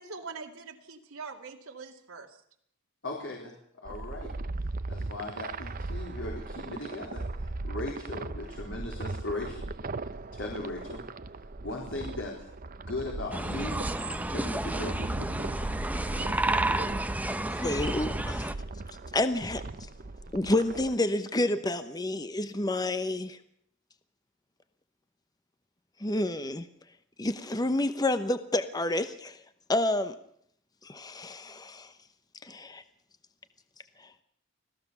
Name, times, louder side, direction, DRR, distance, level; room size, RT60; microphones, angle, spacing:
voice 1, 0.0-2.4, right 4 dB, 85° right, 1 dB, 2.4 m, -43 dB
voice 2, 3.0-3.5 3.8-4.3 4.9-9.7 10.3-11.1 11.6-12.3 12.9-13.7 14.2-15.3, left 2 dB, 60° left, -1 dB, 4.2 m, -38 dB
sound 1, 3.9-21.0, right 2 dB, 45° right, 0.8 m, -38 dB
sound 2, 13.3-18.5, right 1 dB, 10° right, 0.9 m, -31 dB
voice 3, 17.6-18.5 19.1-19.6 20.3-23.4 26.0-26.7 27.2-29.4 29.7-30.1 30.8-31.9 32.4-32.8, left 1 dB, 20° left, 10 dB, 1.0 m, -29 dB
25.5 x 16.5 x 6.9 m, 0.68 s
head